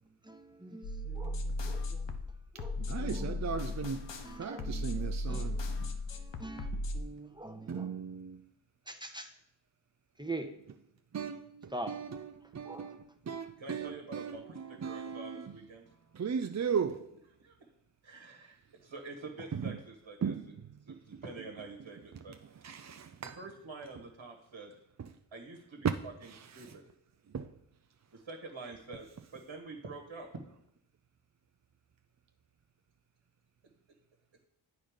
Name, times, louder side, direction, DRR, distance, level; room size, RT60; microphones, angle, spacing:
voice 1, 0.2-2.2 2.5-3.7 4.2-8.0 8.9-9.3 10.2-10.5 11.7-12.0 12.6-12.9 14.4-14.5, right 2 dB, 10° right, 0.9 m, -44 dB
sound 1, 0.8-7.0, left 2 dB, 65° left, 0.9 m, -36 dB
voice 2, 2.8-4.1 4.4-6.0 6.7-6.8 7.7-8.4 11.1-15.6 16.1-17.1 19.5-19.8 20.2-20.4 20.9-21.2 22.6-23.4 25.0-25.1 26.3-26.7 27.3-27.5, right 6 dB, 35° right, 0.5 m, -38 dB
voice 3, 13.6-15.8 17.4-17.6 18.0-20.3 20.8-22.3 23.4-24.7 25.3-26.8 28.1-30.3, right 3 dB, 65° right, 1.4 m, -47 dB
8.7 x 4.0 x 5.0 m
cardioid pair, 40°, 47 cm